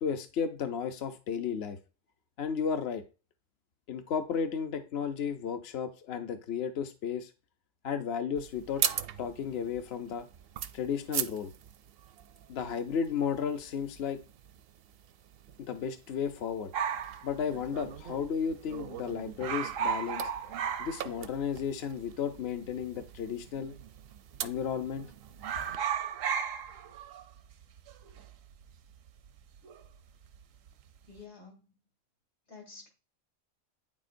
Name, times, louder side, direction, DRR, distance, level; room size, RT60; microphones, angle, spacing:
voice 1, 0.0-1.8 2.4-3.0 3.9-7.3 7.8-8.8 9.2-10.3 10.7-11.5 12.5-14.2 15.6-16.7 17.2-20.3 20.8-23.7 24.4-25.1, left 7 dB, 60° left, 7 dB, 0.9 m, -33 dB
sound 1, 8.4-25.8, right 9 dB, 60° right, 0.6 m, -41 dB
sound 2, 16.7-18.2 18.5-18.6 18.8-19.1 19.4-21.6 21.9-22.0 22.8-23.5 23.8-24.1 24.4-25.0 25.3-30.0 30.2-30.7, right 7 dB, 85° right, 1.0 m, -35 dB
voice 2, 31.1-31.6 32.5-32.9, left 4 dB, 80° left, 1 dB, 3.2 m, -49 dB
9.2 x 7.3 x 2.6 m, 0.33 s
omnidirectional pair, 1.3 m